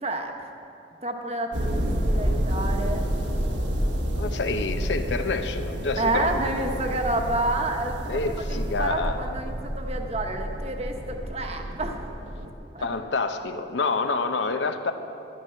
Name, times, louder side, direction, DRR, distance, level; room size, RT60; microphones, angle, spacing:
voice 1, 0.0-0.3 1.0-3.0 6.0-8.2 8.5-12.0 12.7-12.9, right 2 dB, 35° right, 4 dB, 1.0 m, -29 dB
sound 1, 1.5-12.5, equal, 85° right, 1.3 m, -29 dB
voice 2, 4.2-6.7 8.1-9.3 12.8-14.9, left 3 dB, 85° left, 8 dB, 0.8 m, -28 dB
12.5 x 10.5 x 5.7 m, 2.8 s
head